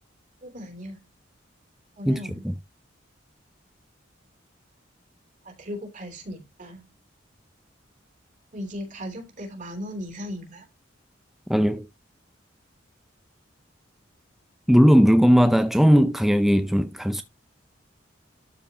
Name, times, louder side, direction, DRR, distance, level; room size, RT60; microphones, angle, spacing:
voice 1, 0.4-1.0 2.0-2.4 5.4-6.8 8.5-10.7, equal, 45° right, 3.2 m, -37 dB
voice 2, 2.1-2.5 11.5-11.9 14.7-17.2, equal, ahead, 0.4 m, -18 dB
12.5 x 4.8 x 2.9 m
head